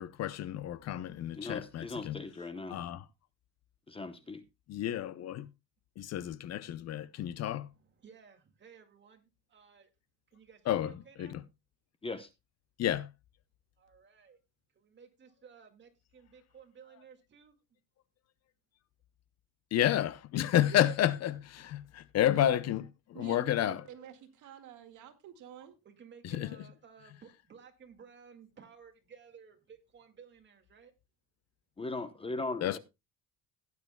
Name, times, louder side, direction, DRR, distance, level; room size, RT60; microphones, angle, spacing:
voice 1, 0.0-2.2 2.7-3.0 4.7-5.5 6.0-7.7 10.7-11.4 12.8-13.1 19.7-23.8 26.2-26.6 32.6-32.8, left 12 dB, 55° left, 0.6 m, -31 dB
voice 2, 1.3-2.8 3.9-4.4 12.0-12.3 31.8-32.8, left 3 dB, 15° left, 0.8 m, -38 dB
voice 3, 3.9-4.2 7.0-9.9 10.3-11.4 13.8-14.4 14.7-17.6 25.8-30.9, right 6 dB, 35° right, 2.1 m, -57 dB
voice 4, 22.3-22.6 23.1-25.8, right 10 dB, 70° right, 1.9 m, -47 dB
16.5 x 9.6 x 2.2 m
cardioid pair, 140°, 32 cm